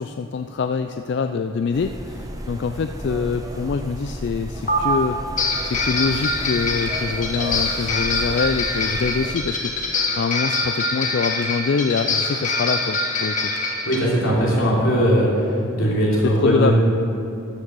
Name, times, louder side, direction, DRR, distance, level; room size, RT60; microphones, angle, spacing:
voice 1, 0.0-5.2 5.6-9.9 10.2-13.5 16.2-16.7, left 5 dB, 55° left, 7 dB, 0.3 m, -24 dB
sound 1, 1.7-9.4, equal, 15° right, 0.7 m, -34 dB
sound 2, 4.7-4.8 5.4-14.0, left 3 dB, 35° left, 1.4 m, -24 dB
voice 2, 13.8-15.4 15.7-16.7, equal, 85° left, -5 dB, 3.2 m, -19 dB
13.0 x 7.3 x 6.2 m, 2.7 s
head